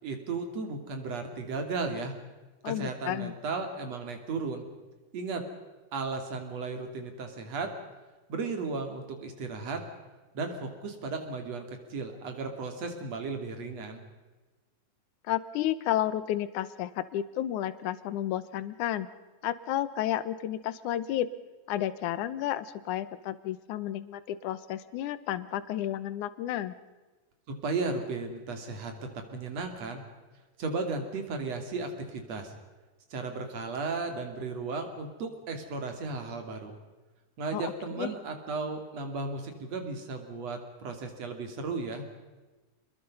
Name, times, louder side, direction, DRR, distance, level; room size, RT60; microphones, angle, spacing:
voice 1, 0.0-2.1 2.7-4.6 5.1-5.4 5.9-7.7 8.3-9.8 10.3-11.6 11.9-14.0 27.5-28.9 29.3-30.0 30.6-32.5 33.1-36.7 37.4-42.0, right 3 dB, 55° right, 5 dB, 3.8 m, -35 dB
voice 2, 2.6-3.3 15.2-19.1 19.4-21.3 21.7-26.7 37.5-37.7 38.0-38.1, left 12 dB, 75° left, 14 dB, 2.4 m, -32 dB
27.5 x 21.5 x 5.5 m, 1.2 s
omnidirectional pair, 3.6 m